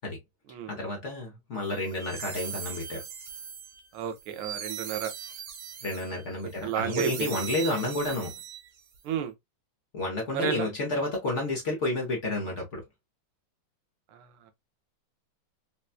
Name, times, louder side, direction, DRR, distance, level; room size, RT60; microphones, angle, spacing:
voice 1, 0.7-3.0 5.8-8.3 9.9-12.8, left 2 dB, 60° left, 0.7 m, -30 dB
sound 1, 1.7-9.0, right 8 dB, 65° right, 1.5 m, -40 dB
voice 2, 3.9-5.1 6.4-7.3 9.0-9.3 10.3-10.7 14.1-14.5, right 8 dB, 80° right, 1.5 m, -32 dB
4.1 x 2.2 x 2.4 m
omnidirectional pair, 2.4 m